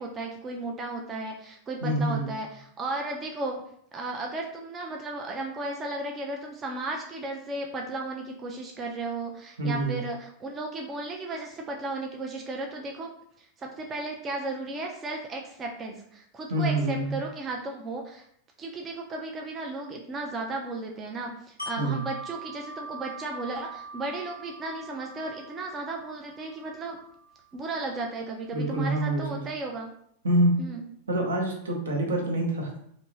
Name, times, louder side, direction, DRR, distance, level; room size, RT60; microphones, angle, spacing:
voice 1, 0.0-3.6 3.9-13.1 13.4-18.2 18.6-27.0 27.5-29.9 30.6-30.9, right 2 dB, 25° right, 1 dB, 0.4 m, -35 dB
voice 2, 1.8-2.3 9.6-10.0 16.5-17.2 21.8-22.0 28.5-29.4 30.2-30.6 31.1-32.8, right 1 dB, 70° right, 1 dB, 0.7 m, -26 dB
Wind chime, 21.6-27.4 27.8-27.9, right 3 dB, 90° left, 0.6 m, -42 dB
2.6 x 2.6 x 2.9 m, 0.68 s
figure-of-eight pair, 90°, 0 cm